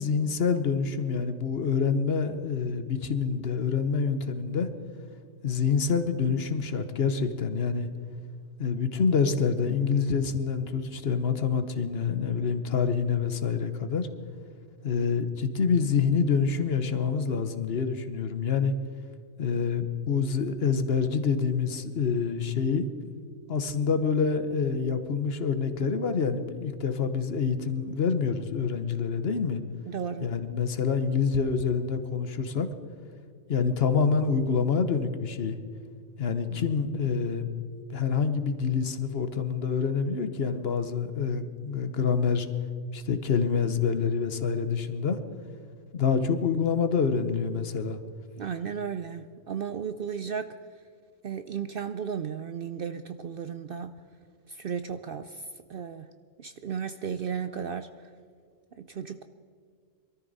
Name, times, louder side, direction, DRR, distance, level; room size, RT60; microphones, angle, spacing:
voice 1, 0.0-4.7 5.4-7.9 8.6-14.1 14.8-18.7 19.4-22.9 23.5-29.6 30.2-32.7 33.5-35.6 36.2-37.5 37.9-42.5 42.9-45.2 45.9-48.0, left 5 dB, 55° left, 10 dB, 1.1 m, -27 dB
voice 2, 29.9-30.3 36.5-36.6 48.4-50.5 51.2-53.9 54.5-56.1 56.4-58.1 58.8-59.3, right 7 dB, 60° right, 10 dB, 0.6 m, -34 dB
22.5 x 13.5 x 4.0 m, 2.1 s
omnidirectional pair, 1.3 m